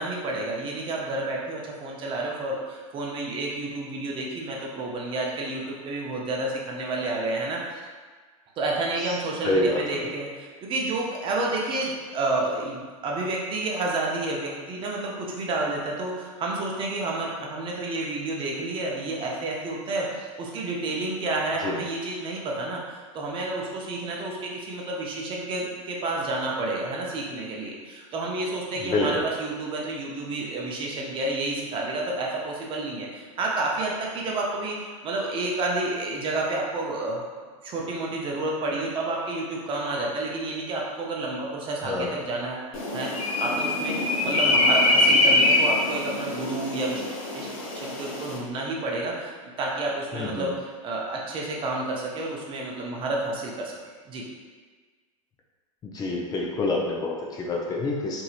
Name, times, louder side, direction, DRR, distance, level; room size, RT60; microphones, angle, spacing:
voice 1, 0.0-7.8 8.6-37.2 37.6-47.0 47.3-47.5 47.7-53.8 54.1-54.2, right 2 dB, 30° right, -2 dB, 0.6 m, -30 dB
voice 2, 9.4-10.1 21.6-21.8 28.8-29.2 41.8-42.1 50.1-50.5 55.8-58.2, left 2 dB, 20° left, -1 dB, 0.4 m, -27 dB
sound 1, 42.7-48.4, left 2 dB, 85° left, 0.7 m, -23 dB
2.9 x 2.7 x 2.4 m, 1.5 s
hypercardioid pair, 115°, 17 cm